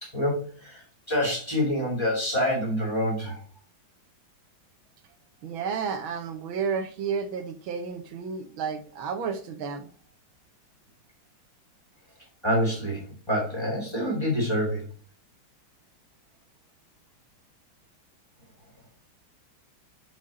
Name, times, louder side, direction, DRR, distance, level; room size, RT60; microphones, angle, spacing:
voice 1, 0.0-3.4 12.4-14.9, equal, 10° left, -2 dB, 2.7 m, -27 dB
voice 2, 5.4-9.9, right 6 dB, 75° right, 7 dB, 1.5 m, -31 dB
5.5 x 5.0 x 4.1 m, 0.40 s
omnidirectional pair, 2.3 m